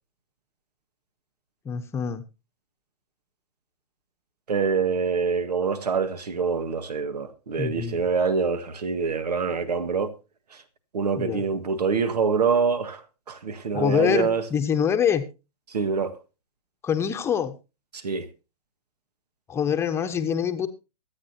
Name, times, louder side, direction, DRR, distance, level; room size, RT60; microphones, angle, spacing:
voice 1, 1.6-2.2 7.6-8.0 11.2-11.4 13.7-15.3 16.8-17.6 19.5-20.7, left 8 dB, 15° left, 0.9 m, -25 dB
voice 2, 4.5-10.1 10.5-10.6 10.9-13.0 13.3-14.4 15.7-16.1 17.9-18.3, right 5 dB, 85° right, 1.7 m, -25 dB
23.5 x 8.7 x 2.8 m
hypercardioid pair, 145°, 20 cm